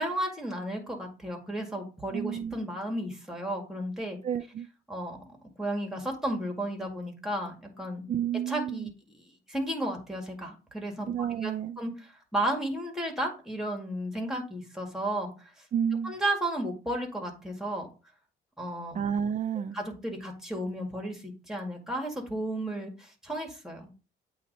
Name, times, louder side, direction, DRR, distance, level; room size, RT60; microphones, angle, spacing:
voice 1, 0.0-4.2 4.9-5.2 5.6-8.0 8.5-8.9 9.1-11.5 11.8-15.5 16.0-17.9 18.6-19.0 19.6-23.9, right 1 dB, ahead, 2.0 m, -33 dB
voice 2, 2.1-2.6 4.2-4.7 8.1-8.9 11.1-11.8 15.7-16.1 18.9-19.8, right 8 dB, 40° right, 0.4 m, -30 dB
8.4 x 2.8 x 4.1 m
cardioid pair, 90°, 20 cm